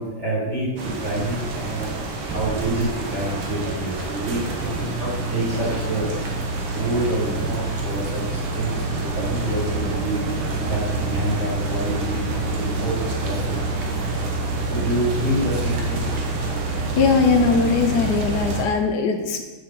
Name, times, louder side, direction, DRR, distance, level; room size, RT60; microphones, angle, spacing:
voice 1, 0.0-1.9 2.3-4.5 4.8-6.1 6.7-10.2 10.6-13.6 14.7-16.2, right 1 dB, 30° right, -7 dB, 2.4 m, -27 dB
sound 1, 0.8-18.6, right 3 dB, 85° right, 1.9 m, -27 dB
voice 2, 17.0-19.4, left 4 dB, 65° left, 4 dB, 1.0 m, -20 dB
8.0 x 5.9 x 3.7 m, 1.2 s
omnidirectional pair, 2.3 m